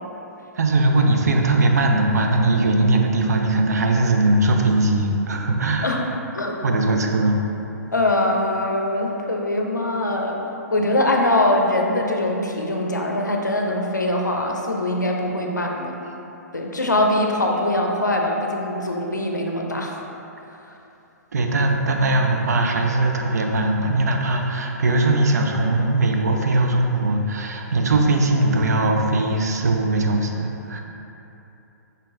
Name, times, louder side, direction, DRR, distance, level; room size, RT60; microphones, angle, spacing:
voice 1, 0.6-5.9 6.6-7.4 21.3-30.8, right 2 dB, 65° right, 2 dB, 0.5 m, -20 dB
voice 2, 6.3-7.0 7.9-16.0 16.5-20.0, left 1 dB, 85° left, 1 dB, 0.5 m, -22 dB
5.3 x 3.6 x 2.5 m, 2.9 s
figure-of-eight pair, 120°, 9 cm